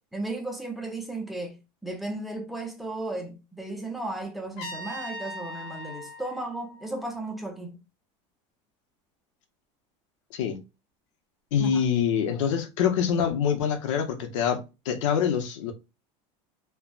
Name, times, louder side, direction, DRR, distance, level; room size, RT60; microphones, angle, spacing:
voice 1, 0.1-1.6 1.8-7.8 11.6-11.8, right 2 dB, ahead, 0.4 m, -35 dB
Trumpet, 4.6-7.5, left 1 dB, 65° left, 1.1 m, -40 dB
voice 2, 11.5-14.6 14.9-15.7, left 8 dB, 90° left, 0.8 m, -25 dB
3.3 x 2.1 x 2.4 m
cardioid pair, 165°, 15 cm